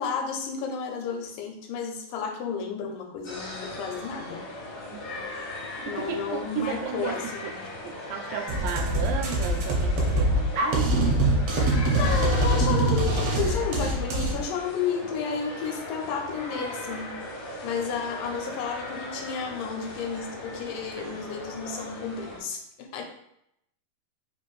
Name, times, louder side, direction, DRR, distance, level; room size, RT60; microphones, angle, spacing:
voice 1, 0.0-4.4 5.8-7.7 11.9-17.2 17.6-23.0, left 6 dB, 80° left, 3 dB, 2.2 m, -32 dB
sound 1, 3.2-22.4, left 1 dB, 65° left, 1.2 m, -38 dB
voice 2, 4.9-5.3 5.6-7.5 7.8-11.0 21.0-21.2, right 8 dB, 90° right, 5 dB, 2.2 m, -34 dB
sound 2, 8.5-14.3, right 1 dB, 75° right, 1.6 m, -23 dB
5.1 x 2.5 x 3.0 m, 0.78 s
omnidirectional pair, 3.9 m